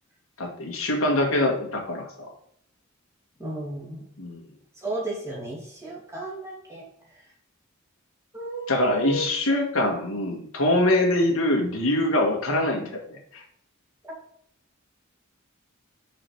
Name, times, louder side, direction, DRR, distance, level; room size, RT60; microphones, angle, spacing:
voice 1, 0.4-2.3 4.2-4.4 8.7-13.4, left 1 dB, 90° left, 0 dB, 1.7 m, -24 dB
voice 2, 3.4-4.1 4.8-6.8 7.1-7.2 8.3-9.2, right 2 dB, 15° right, -4 dB, 2.6 m, -33 dB
5.8 x 5.0 x 4.6 m, 0.66 s
head